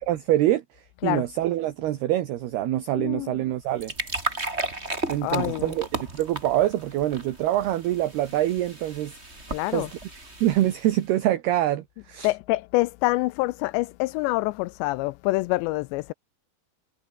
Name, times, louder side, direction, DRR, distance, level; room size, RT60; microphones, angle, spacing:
voice 1, 0.1-0.6 1.0-3.9 5.1-9.1 9.7-12.3, right 13 dB, 65° right, 3.0 m, -25 dB
voice 2, 3.0-3.4 5.2-5.8 9.5-9.9 12.2-16.1, left 21 dB, 85° left, 2.5 m, -26 dB
sound 1, 3.5-11.1, right 2 dB, 15° right, 4.2 m, -35 dB
omnidirectional pair, 5.5 m